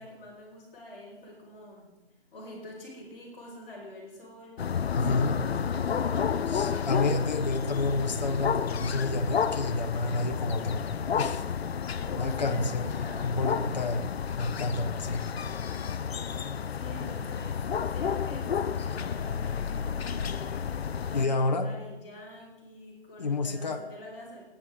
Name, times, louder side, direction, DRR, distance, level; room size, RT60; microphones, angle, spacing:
voice 1, 0.0-1.9 2.3-4.6 5.0-6.3 12.0-13.4 16.7-20.7 21.1-24.4, left 1 dB, 15° left, -10 dB, 3.8 m, -46 dB
sound 1, 4.6-21.3, left 7 dB, 70° left, 0.6 m, -31 dB
voice 2, 5.0-5.4 6.5-10.8 11.1-11.4 12.2-13.0 13.2-14.1 14.4-15.3 21.1-21.7 23.2-23.8, left 3 dB, 40° left, 5 dB, 0.9 m, -29 dB
18.0 x 8.6 x 3.7 m, 1.0 s
hypercardioid pair, 175°, 32 cm